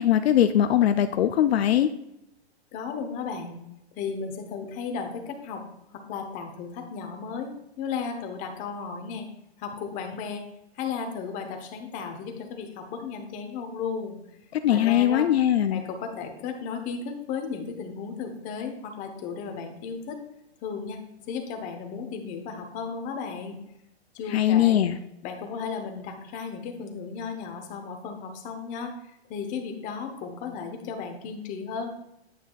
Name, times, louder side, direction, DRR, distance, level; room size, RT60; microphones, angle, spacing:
voice 1, 0.0-1.9 14.5-15.8 24.3-25.0, left 11 dB, 70° left, 10 dB, 0.5 m, -21 dB
voice 2, 2.7-3.6 4.0-5.6 6.1-7.5 7.8-9.3 9.6-10.4 10.7-14.2 14.7-15.3 15.7-20.2 20.6-23.6 24.1-24.8 25.2-32.1, left 5 dB, 25° left, 4 dB, 0.9 m, -35 dB
9.3 x 5.6 x 2.3 m, 0.84 s
hypercardioid pair, 145°, 33 cm